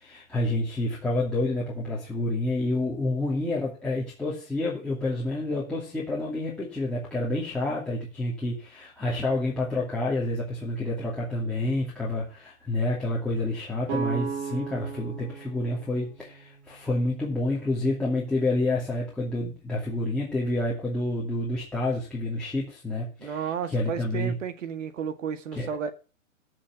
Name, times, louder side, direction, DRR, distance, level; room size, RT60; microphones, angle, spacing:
voice 1, 0.0-24.3 25.5-25.7, left 2 dB, ahead, 2.7 m, -29 dB
sound 1, 13.9-17.7, right 6 dB, 30° right, 2.9 m, -36 dB
voice 2, 23.2-25.9, right 7 dB, 65° right, 2.0 m, -32 dB
14.0 x 6.3 x 6.0 m
hypercardioid pair, 155°, 40 cm